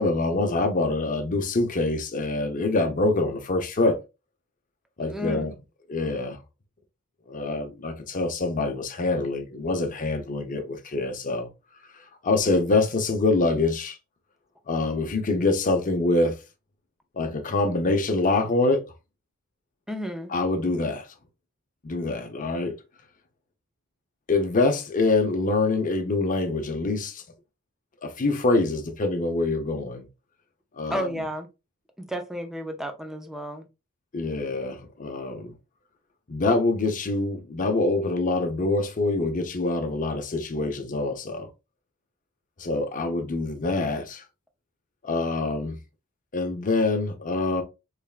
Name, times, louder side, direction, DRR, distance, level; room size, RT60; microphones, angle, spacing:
voice 1, 0.0-4.0 5.0-5.5 5.9-6.4 7.3-11.5 12.2-14.0 14.7-16.4 17.2-18.8 20.3-21.1 21.8-22.8 24.3-27.2 28.0-30.1 30.7-31.1 34.1-35.5 36.3-41.5 42.6-44.2 45.0-45.8 46.3-47.6, left 2 dB, 35° left, 0.7 m, -25 dB
voice 2, 5.0-5.5 19.9-20.3 30.9-31.5 32.0-33.7, right 1 dB, ahead, 0.5 m, -32 dB
3.5 x 3.3 x 2.3 m
head